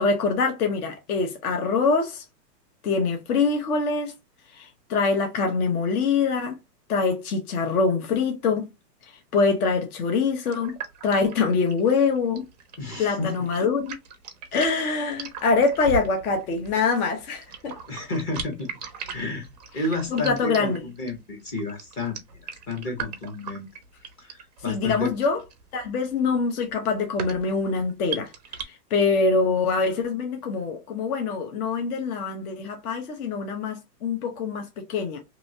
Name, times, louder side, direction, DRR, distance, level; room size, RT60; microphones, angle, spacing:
voice 1, 0.0-2.2 2.8-4.1 4.5-6.5 6.9-8.7 9.3-10.7 11.0-12.5 13.0-14.0 14.5-17.7 20.1-20.8 24.7-25.4 25.7-28.3 28.6-35.2, left 4 dB, 60° left, 0.9 m, -24 dB
sound 1, 10.5-28.6, right 5 dB, 30° right, 0.4 m, -39 dB
voice 2, 12.8-13.3 17.9-18.7 19.1-19.5 19.7-23.7 24.2-25.1, left 2 dB, 20° left, 0.6 m, -31 dB
2.9 x 2.7 x 2.7 m
hypercardioid pair, 145°, 50 cm